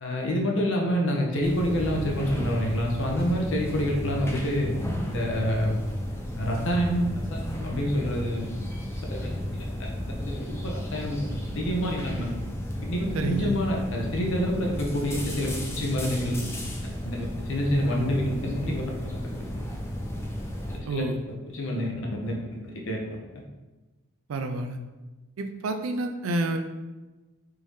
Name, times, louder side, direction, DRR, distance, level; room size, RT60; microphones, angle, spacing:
voice 1, 0.0-4.7 5.1-5.8 6.3-8.5 9.2-9.9 10.2-11.2 11.5-12.2 12.9-16.4 17.0-18.8 19.1-19.2 20.8-21.0 21.5-21.9 22.2-23.0, equal, 60° left, 0 dB, 0.7 m, -27 dB
sound 1, 1.4-20.8, equal, 10° left, 0.4 m, -33 dB
voice 2, 13.1-13.6 20.9-21.2 24.3-24.8 25.4-26.6, right 2 dB, 65° right, 7 dB, 0.4 m, -29 dB
3.5 x 2.7 x 3.1 m, 1.2 s
head